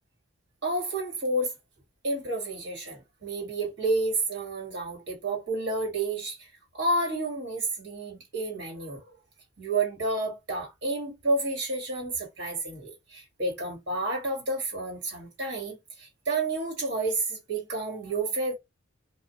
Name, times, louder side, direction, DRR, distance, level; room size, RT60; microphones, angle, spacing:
voice 1, 0.6-1.5 2.0-9.1 9.6-18.5, right 2 dB, 55° right, 1.6 m, -30 dB
2.5 x 2.4 x 2.6 m
head